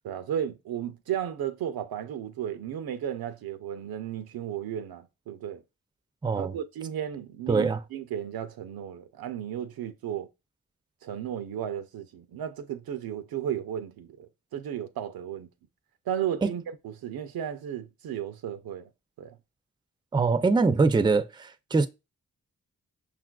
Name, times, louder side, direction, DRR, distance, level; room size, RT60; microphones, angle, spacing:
voice 1, 0.0-5.6 6.3-10.3 11.0-15.5 16.1-18.9 19.2-19.4, right 10 dB, 80° right, 0.5 m, -34 dB
voice 2, 6.2-6.5 7.5-7.8 16.4-16.5 20.1-21.9, right 4 dB, 15° right, 0.4 m, -23 dB
5.5 x 2.4 x 2.3 m
cardioid pair, 40°, 36 cm